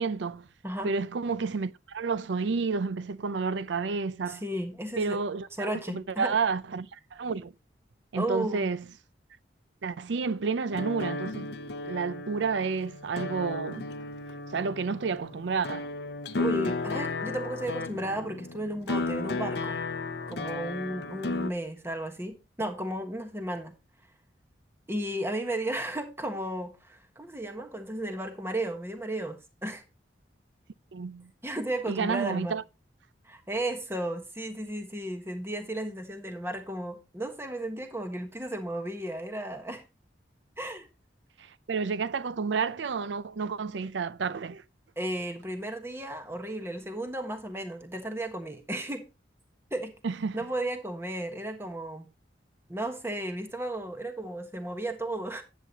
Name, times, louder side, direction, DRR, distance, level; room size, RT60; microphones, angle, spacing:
voice 1, 0.0-0.5 0.8-4.4 5.0-7.5 8.1-8.8 9.8-11.5 11.8-13.9 14.5-15.9 30.9-31.3 31.9-32.6 41.4-44.6 50.0-50.5, right 5 dB, 80° right, 0.5 m, -30 dB
voice 2, 4.3-5.2 5.6-6.3 8.1-8.7 16.4-19.8 20.3-23.7 24.9-29.8 31.4-32.6 33.2-39.8 40.6-40.9 45.0-49.1 49.7-50.0 50.3-52.1 52.7-55.4, right 1 dB, 15° right, 1.3 m, -34 dB
sound 1, 10.7-21.5, left 3 dB, 60° left, 0.6 m, -34 dB
10.0 x 8.2 x 2.9 m
head